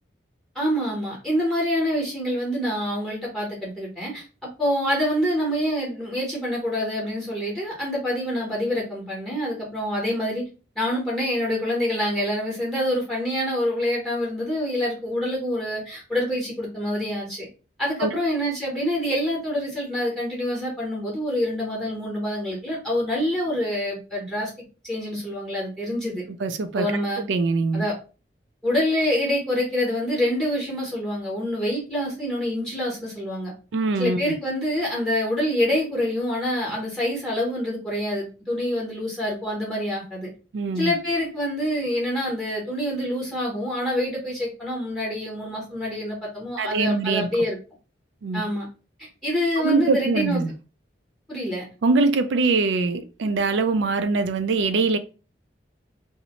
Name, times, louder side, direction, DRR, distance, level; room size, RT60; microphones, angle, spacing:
voice 1, 0.5-10.4 10.8-17.5 17.8-24.5 24.8-26.2 26.7-27.2 27.7-27.9 28.6-33.5 34.0-40.3 40.7-47.6 48.3-48.7 49.0-50.5 51.3-51.6, equal, ahead, 0.8 m, -26 dB
voice 2, 26.4-26.9 27.3-27.9 33.7-34.3 40.5-40.9 46.6-47.3 48.2-48.4 49.6-50.5 51.8-55.0, right 3 dB, 85° right, 0.4 m, -23 dB
2.6 x 2.0 x 2.9 m
head